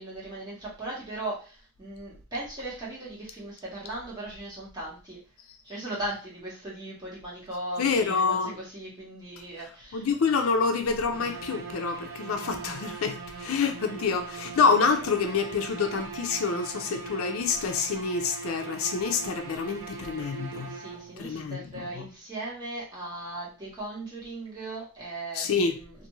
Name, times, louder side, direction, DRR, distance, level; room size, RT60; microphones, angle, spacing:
voice 1, 0.0-5.2 5.6-10.1 20.7-26.1, right 1 dB, 20° right, 1.3 m, -38 dB
voice 2, 7.8-8.5 9.9-20.7 21.2-22.1 25.3-25.8, left 5 dB, 80° left, 0.5 m, -27 dB
sound 1, 11.1-21.3, right 5 dB, 65° right, 0.8 m, -41 dB
2.5 x 2.5 x 3.0 m
head